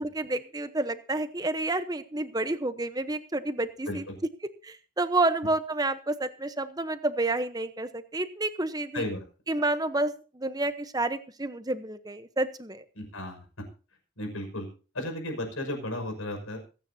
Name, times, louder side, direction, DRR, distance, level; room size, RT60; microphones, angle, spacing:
voice 1, 0.0-4.1 4.6-9.1 9.5-12.8, right 2 dB, 20° right, 11 dB, 0.9 m, -29 dB
voice 2, 12.9-13.4 14.2-14.7 14.9-16.6, left 1 dB, 90° left, 5 dB, 6.2 m, -34 dB
26.0 x 9.6 x 2.8 m, 0.36 s
head